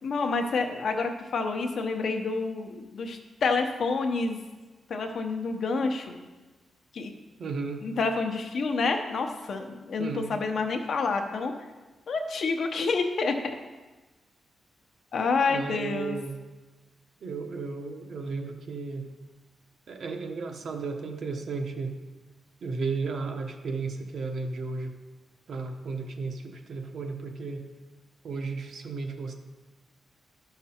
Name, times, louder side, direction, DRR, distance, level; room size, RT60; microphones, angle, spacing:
voice 1, 0.0-4.4 4.9-6.2 6.9-7.1 7.8-11.5 12.1-13.4 15.1-16.2, left 4 dB, 55° left, 5 dB, 0.9 m, -28 dB
voice 2, 7.4-7.8 10.0-10.4 15.5-16.4 17.2-19.1 19.9-21.9 22.6-24.9 25.5-27.7 28.2-29.3, right 4 dB, 55° right, 4 dB, 1.0 m, -34 dB
12.0 x 5.9 x 4.3 m, 1.2 s
wide cardioid pair, 155°, 0 cm